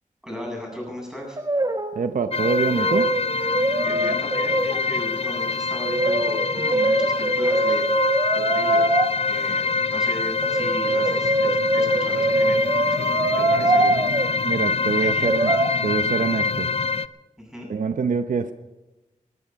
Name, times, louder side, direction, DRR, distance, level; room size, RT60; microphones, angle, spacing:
voice 1, 0.2-1.4 3.8-8.1 8.5-8.9 9.3-12.6 12.9-13.9 15.0-15.3 17.4-17.7, equal, 5° right, -1 dB, 8.0 m, -36 dB
Brass instrument, 1.4-2.1 2.3-4.8 5.8-9.1 10.4-14.3 15.2-15.7, right 2 dB, 30° right, 1.1 m, -23 dB
voice 2, 2.0-3.1 14.4-15.5 15.8-16.7 17.7-18.5, right 5 dB, 80° right, 9 dB, 0.9 m, -25 dB
sound 1, 2.3-17.1, left 4 dB, 45° left, 0.5 m, -25 dB
19.5 x 13.5 x 5.4 m, 1.1 s
wide cardioid pair, 100°, 13 cm